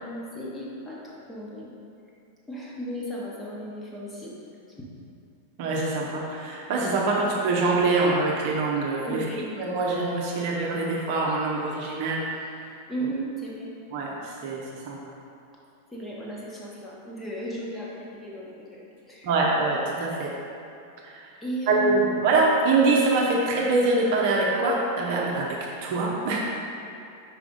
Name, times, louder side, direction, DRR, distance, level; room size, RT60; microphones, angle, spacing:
voice 1, 0.1-1.0 1.3-1.7 2.5-4.3 9.1-9.4 12.9-13.7 15.9-18.8 19.1-19.3 21.4-22.4, right 1 dB, 10° left, -5 dB, 1.2 m, -34 dB
voice 2, 5.6-9.3 9.6-12.4 13.9-15.0 19.2-20.3 21.0-21.3 21.7-26.4, right 3 dB, 50° right, -3 dB, 0.8 m, -24 dB
5.1 x 4.8 x 3.8 m, 2.7 s
figure-of-eight pair, 90°, 0 cm